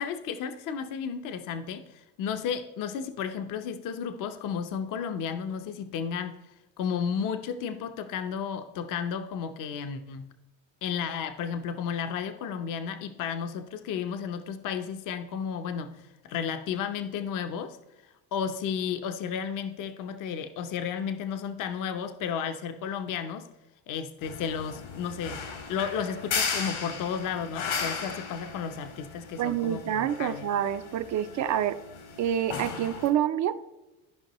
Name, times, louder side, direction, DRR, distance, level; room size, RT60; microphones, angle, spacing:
voice 1, 0.0-6.4 6.8-10.3 10.8-17.8 18.3-23.5 23.9-30.5, left 7 dB, 55° left, 9 dB, 0.7 m, -33 dB
sound 1, 24.2-33.1, left 5 dB, 75° left, 1.9 m, -36 dB
voice 2, 29.4-31.8 32.2-33.6, right 10 dB, 50° right, 11 dB, 0.5 m, -27 dB
13.5 x 5.3 x 3.0 m, 1.0 s
cardioid pair, 115°, 39 cm